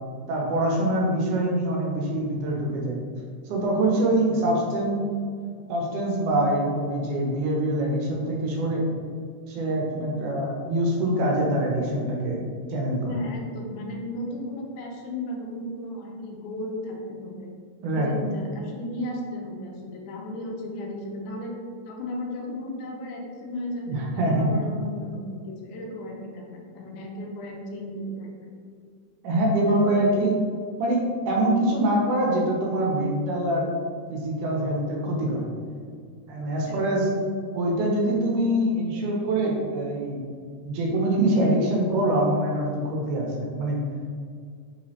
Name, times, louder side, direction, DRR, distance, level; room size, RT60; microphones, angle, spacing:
voice 1, 0.3-3.0 3.5-5.1 5.7-8.8 9.5-12.4 12.7-13.2 17.8-18.1 23.9-24.5 29.2-30.4 30.8-33.7 34.1-35.5 36.3-37.1 37.5-40.2 40.6-43.8, right 1 dB, 90° right, -1 dB, 2.3 m, -24 dB
voice 2, 13.0-17.5 17.9-21.5 21.9-28.6 29.7-30.0 36.7-37.2, left 1 dB, 80° left, 0 dB, 2.0 m, -35 dB
5.3 x 3.1 x 2.8 m, 2.1 s
omnidirectional pair, 3.6 m